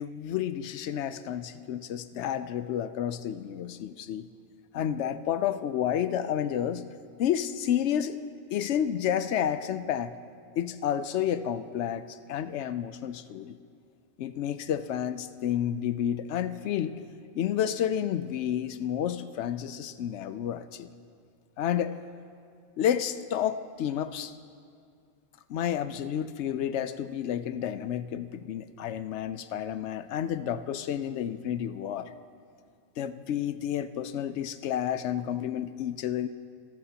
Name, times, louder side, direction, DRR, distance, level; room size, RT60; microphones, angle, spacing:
voice 1, 0.0-4.3 4.7-6.9 7.2-8.2 8.5-10.1 10.6-13.6 14.2-17.0 17.3-20.9 21.6-22.0 22.8-24.3 25.5-32.1 33.0-36.3, left 10 dB, 80° left, 12 dB, 0.9 m, -30 dB
22.0 x 12.5 x 2.8 m, 2.4 s
omnidirectional pair, 1.2 m